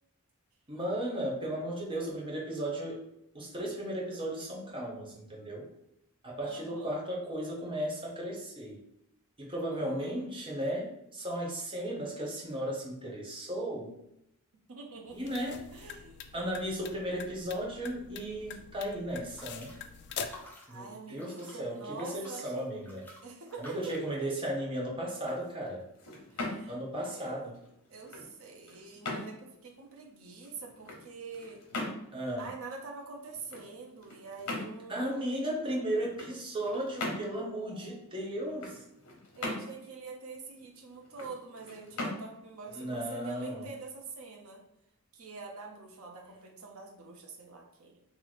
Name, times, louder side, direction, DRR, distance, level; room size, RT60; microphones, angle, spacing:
voice 1, 0.7-3.0 3.3-5.7 6.2-8.8 9.4-13.9 15.1-15.6 16.3-19.7 20.7-23.0 23.6-25.8 26.7-27.6 32.1-32.5 34.9-38.8 42.7-43.7, right 1 dB, 25° right, -3 dB, 0.9 m, -35 dB
voice 2, 6.4-6.9 9.7-10.2 14.7-15.3 15.7-16.2 20.7-22.7 23.2-23.8 26.3-27.5 27.9-31.6 32.4-35.3 37.7-38.1 39.4-44.6 45.1-48.0, right 4 dB, 65° right, 1 dB, 0.7 m, -46 dB
sound 1, 15.1-20.5, left 6 dB, 50° left, 0.3 m, -44 dB
sound 2, 19.1-24.1, left 1 dB, 10° left, 0.6 m, -53 dB
sound 3, 25.1-43.9, left 2 dB, 90° left, 1.0 m, -42 dB
3.1 x 2.9 x 4.0 m, 0.81 s
head